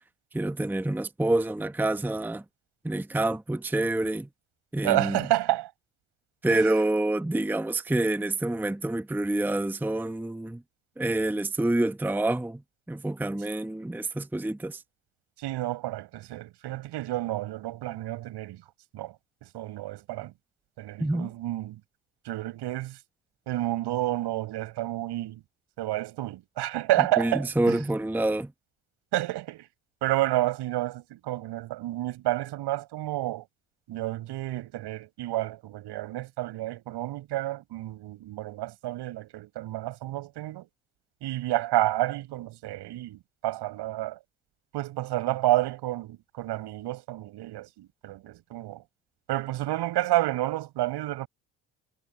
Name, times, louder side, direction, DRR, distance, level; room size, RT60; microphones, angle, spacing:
voice 1, 0.3-2.4 2.8-4.3 4.7-5.2 6.4-10.6 11.0-12.6 12.9-14.8 21.0-21.3 27.2-28.5, right 2 dB, 5° right, 0.9 m, -27 dB
voice 2, 4.8-5.7 6.5-6.7 15.4-18.6 18.9-19.1 19.4-20.3 20.8-21.8 22.2-23.0 23.5-25.4 25.8-27.8 29.1-29.7 30.0-33.5 33.9-40.7 41.2-44.2 44.7-48.8 49.3-51.3, right 15 dB, 75° right, 7.6 m, -30 dB
supercardioid pair, 70°, 41 cm